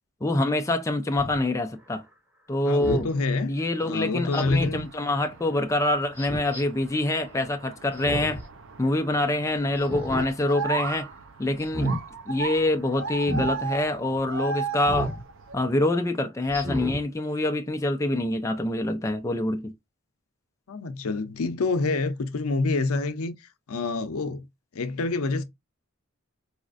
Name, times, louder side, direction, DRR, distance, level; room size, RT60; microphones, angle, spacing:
voice 1, 0.2-2.0 2.5-3.1 3.5-8.4 8.8-11.1 11.4-11.9 12.3-15.1 15.5-19.7, left 1 dB, 15° left, 0.4 m, -25 dB
Speech synthesizer, 1.2-1.4 2.8-3.1 4.3-4.8 6.2-6.6 7.9-8.5 8.8-8.9 9.8-10.3 10.7-11.0 11.6-12.0 13.2-13.5 14.9-15.2 15.7-15.8 16.5-17.0 17.4-17.5, right 1 dB, 10° right, 1.2 m, -31 dB
voice 2, 2.7-3.5 3.9-4.9 20.7-23.3 23.7-24.4 24.7-25.4, left 3 dB, 85° left, 0.6 m, -27 dB
sound 1, 4.7-15.5, right 5 dB, 60° right, 0.5 m, -36 dB
4.1 x 2.4 x 2.5 m
head